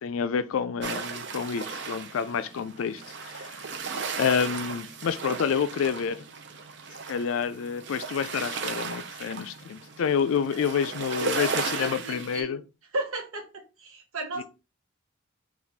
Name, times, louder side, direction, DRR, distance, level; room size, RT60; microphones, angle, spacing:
voice 1, 0.0-3.6 4.2-6.2 7.1-12.6 14.4-14.5, left 7 dB, 75° left, 0.4 m, -28 dB
sound 1, 0.8-12.4, right 5 dB, 55° right, 0.5 m, -36 dB
voice 2, 11.1-12.6 12.9-14.4, right 2 dB, 85° right, 1.0 m, -35 dB
4.0 x 2.4 x 4.4 m
head